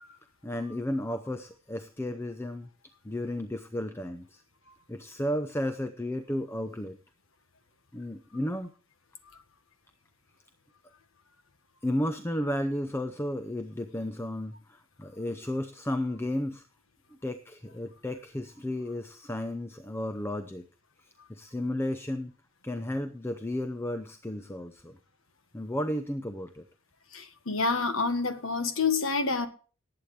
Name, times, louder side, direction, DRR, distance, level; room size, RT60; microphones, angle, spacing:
voice 1, 0.4-2.7 3.0-4.4 4.9-7.0 7.9-8.7 11.8-16.6 17.2-20.6 21.3-22.3 22.6-25.0 25.5-26.6, left 1 dB, 10° left, 8 dB, 0.6 m, -33 dB
voice 2, 27.1-29.5, left 4 dB, 70° left, 8 dB, 1.5 m, -28 dB
19.0 x 8.6 x 3.3 m, 0.38 s
head